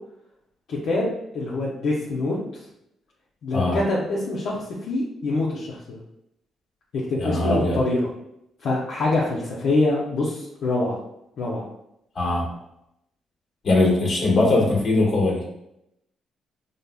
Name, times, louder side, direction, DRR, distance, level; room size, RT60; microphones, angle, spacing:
voice 1, 0.7-2.4 3.4-6.0 6.9-8.1 8.6-11.0 11.4-11.6, left 2 dB, 65° left, -5 dB, 0.7 m, -25 dB
voice 2, 7.2-7.8 12.1-12.5 13.6-15.4, left 2 dB, 50° left, -3 dB, 1.3 m, -20 dB
5.1 x 2.0 x 2.3 m, 0.81 s
cardioid pair, 90°, 0 cm